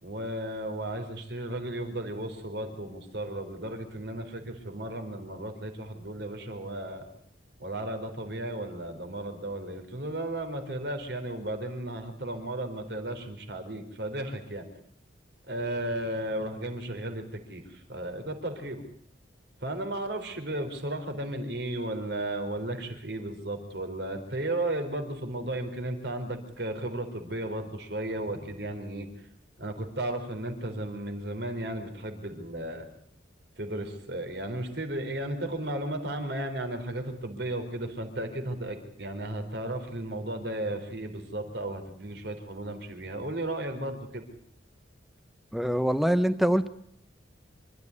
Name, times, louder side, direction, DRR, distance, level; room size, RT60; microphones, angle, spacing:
voice 1, 0.0-7.1 7.6-14.6 15.5-18.8 19.6-29.1 29.6-32.9 33.6-44.2, right 1 dB, 60° right, 6 dB, 4.0 m, -34 dB
voice 2, 45.5-46.7, equal, ahead, 12 dB, 0.9 m, -24 dB
26.0 x 13.5 x 9.7 m, 0.68 s
head